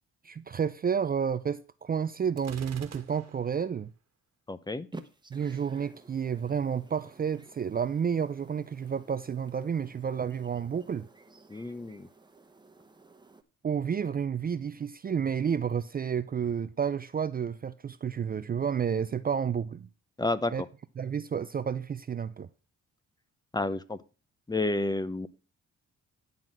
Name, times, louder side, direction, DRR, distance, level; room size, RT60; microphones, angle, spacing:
voice 1, 0.2-3.9 5.3-11.1 13.6-19.9 20.5-20.6 21.0-22.5, right 7 dB, 30° right, 0.5 m, -30 dB
Gunshot gunfire, 2.4-3.6, right 7 dB, 60° right, 1.6 m, -47 dB
voice 2, 4.5-4.9 11.5-12.1 20.2-20.5 23.5-24.0 24.5-25.3, left 2 dB, 15° left, 0.7 m, -30 dB
sound 1, 4.9-13.4, right 3 dB, 15° right, 1.1 m, -52 dB
11.0 x 4.0 x 7.4 m
cardioid pair, 90°, 30 cm